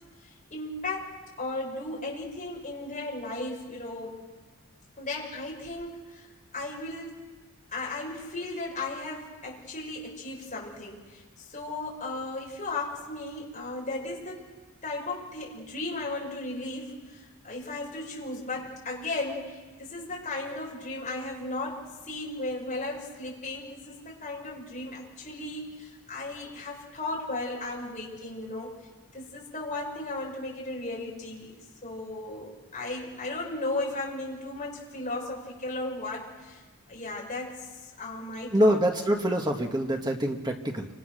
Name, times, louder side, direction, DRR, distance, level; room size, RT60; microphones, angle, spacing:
voice 1, 0.2-4.2 5.0-6.3 6.5-7.3 7.7-14.4 14.8-28.7 29.1-38.8, left 2 dB, 35° left, -3 dB, 6.6 m, -36 dB
voice 2, 38.5-40.9, equal, 20° right, 3 dB, 1.6 m, -25 dB
30.0 x 25.5 x 6.6 m, 1.3 s
head